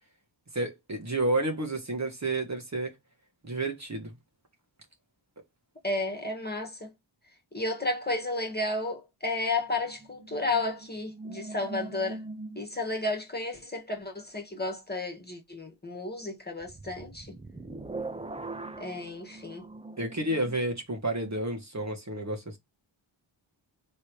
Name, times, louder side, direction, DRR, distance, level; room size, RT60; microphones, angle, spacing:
voice 1, 0.5-2.9 3.4-4.1 20.0-22.6, right 2 dB, 35° right, 1.5 m, -30 dB
voice 2, 5.8-6.9 7.5-12.2 12.5-17.3 18.8-19.7, left 2 dB, 20° left, 1.6 m, -32 dB
sound 1, 9.6-13.0 16.6-20.6, right 3 dB, 15° right, 0.6 m, -42 dB
3.3 x 3.2 x 4.6 m
cardioid pair, 60°, 48 cm